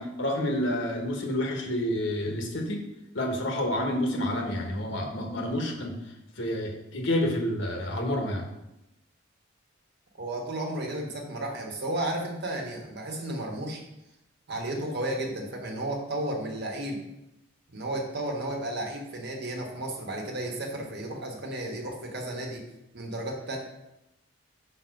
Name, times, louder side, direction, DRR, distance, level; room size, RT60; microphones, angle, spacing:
voice 1, 0.0-2.8 3.1-5.9 6.4-8.5, left 1 dB, 65° left, 1 dB, 1.2 m, -29 dB
voice 2, 10.2-13.8 14.5-17.0 17.7-22.6 22.9-23.6, right 1 dB, 55° right, 0 dB, 1.3 m, -33 dB
5.2 x 4.3 x 5.8 m, 0.90 s
head